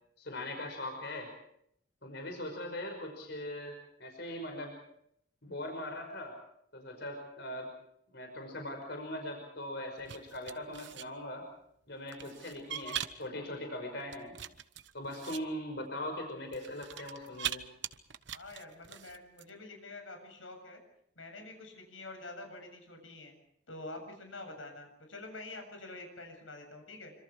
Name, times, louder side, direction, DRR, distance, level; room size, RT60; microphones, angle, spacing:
voice 1, 0.2-1.3 2.0-4.8 5.4-6.3 6.7-7.7 8.1-11.5 11.9-14.3 14.9-17.6, left 1 dB, 60° left, 3 dB, 5.7 m, -40 dB
sound 1, 10.0-11.0 12.1-13.3 14.0-15.4 16.5-17.6 17.8-19.5, right 10 dB, 65° right, 1.1 m, -41 dB
voice 2, 18.3-20.8 21.2-23.3 23.7-27.1, left 2 dB, 85° left, 4 dB, 7.5 m, -47 dB
27.0 x 26.0 x 4.9 m, 0.73 s
head